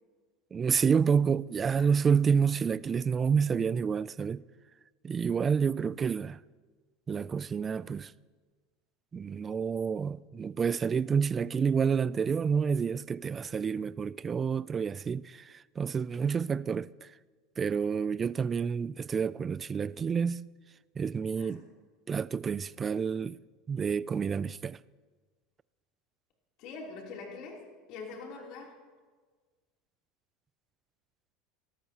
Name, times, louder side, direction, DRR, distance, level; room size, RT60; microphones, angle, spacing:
voice 1, 0.5-4.4 5.0-6.4 7.1-8.1 9.1-17.1 17.6-20.4 21.0-21.6 22.1-23.4 23.7-24.8, right 6 dB, 25° right, 0.3 m, -29 dB
voice 2, 21.3-21.7 26.6-28.7, left 4 dB, 60° left, 3.3 m, -44 dB
17.5 x 13.5 x 2.9 m
supercardioid pair, 110°, 0 cm